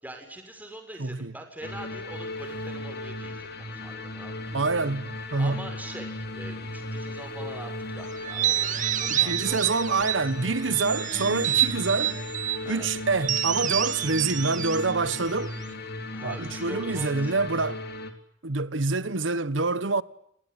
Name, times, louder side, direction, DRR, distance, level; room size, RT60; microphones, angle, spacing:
voice 1, 0.0-4.5 5.4-10.3 11.9-12.1 12.6-12.9 16.1-17.6, right 1 dB, 10° right, 6.7 m, -43 dB
voice 2, 1.0-1.3 4.5-5.7 9.1-12.2 12.7-15.5 16.2-17.8 18.4-20.0, right 3 dB, 75° right, 1.2 m, -26 dB
sound 1, 1.6-18.1, left 2 dB, 55° left, 3.5 m, -36 dB
sound 2, 8.2-10.3 10.7-12.6 13.2-15.7, right 12 dB, 45° right, 2.1 m, -28 dB
29.5 x 19.5 x 9.8 m
head